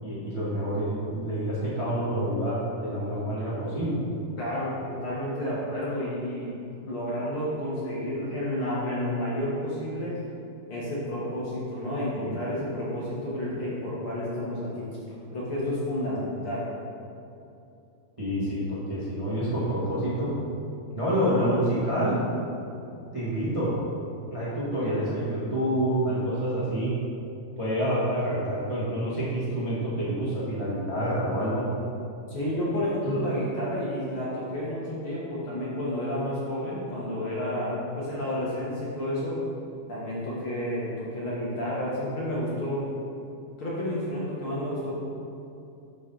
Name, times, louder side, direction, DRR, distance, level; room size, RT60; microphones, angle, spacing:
voice 1, 0.0-4.0 12.2-12.3 13.5-13.6 18.2-20.3 20.9-22.2 22.9-23.7 24.3-26.9 27.6-31.6 33.0-33.1, equal, 40° right, -9 dB, 0.4 m, -28 dB
voice 2, 4.4-6.5 6.8-10.1 10.7-15.0 15.3-16.7 32.3-39.4 39.9-43.0 43.6-44.9, left 1 dB, 55° left, -7 dB, 1.6 m, -30 dB
11.0 x 4.2 x 3.9 m, 2.7 s
omnidirectional pair, 3.7 m